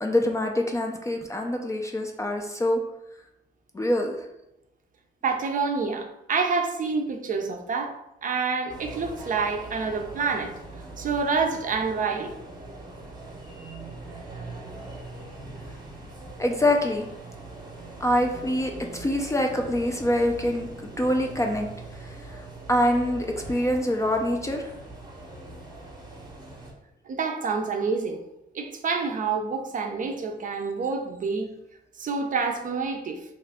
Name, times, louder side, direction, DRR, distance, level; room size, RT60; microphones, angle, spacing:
voice 1, 0.0-2.8 3.7-4.3 16.4-17.1 18.0-21.7 22.0-24.7, left 1 dB, 15° left, 3 dB, 0.4 m, -25 dB
voice 2, 5.2-7.9 8.2-10.5 11.0-12.3 27.1-28.2 28.5-31.5 32.0-33.2, right 4 dB, 40° right, 4 dB, 0.5 m, -27 dB
sound 1, 8.7-26.7, right 2 dB, 20° right, 0.8 m, -42 dB
2.8 x 2.3 x 3.4 m, 0.87 s
cardioid pair, 90°, 20 cm